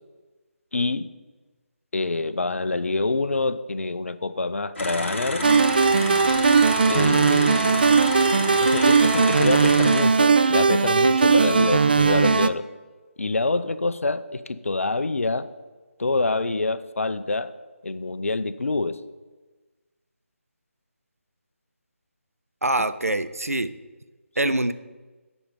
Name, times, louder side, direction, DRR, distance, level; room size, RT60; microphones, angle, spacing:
voice 1, 0.7-1.1 1.9-5.4 6.9-7.7 8.6-12.7 13.2-15.5 16.0-17.5 17.8-19.0, left 3 dB, 65° left, 13 dB, 0.6 m, -26 dB
sound 1, 4.8-10.0, left 2 dB, 50° left, 1.8 m, -30 dB
sound 2, 5.4-12.5, right 5 dB, 40° right, 0.3 m, -19 dB
voice 2, 22.6-23.7 24.4-24.7, right 2 dB, 85° right, 13 dB, 0.5 m, -24 dB
8.6 x 5.3 x 6.8 m, 1.3 s
figure-of-eight pair, 155°, 8 cm